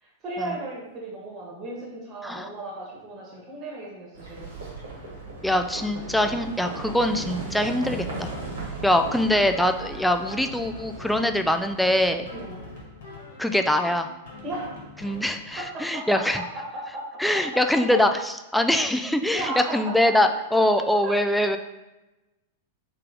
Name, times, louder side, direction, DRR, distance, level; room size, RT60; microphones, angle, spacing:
voice 1, 0.0-4.7 12.3-12.7 14.4-14.8 15.6-17.1 17.3-17.6 17.9-18.0 19.3-20.6 21.0-21.3, right 2 dB, 30° right, -3 dB, 1.2 m, -36 dB
Livestock farm animals working animals, 4.1-12.8, right 2 dB, 65° right, 1.3 m, -37 dB
voice 2, 5.4-8.3 8.8-12.2 13.4-14.1 15.0-16.4 17.2-18.1 18.5-21.6, left 1 dB, ahead, 6 dB, 0.3 m, -23 dB
sound 1, 7.8-15.8, left 2 dB, 60° left, 1.2 m, -45 dB
3.3 x 3.2 x 3.8 m, 1.0 s
figure-of-eight pair, 95°, 0 cm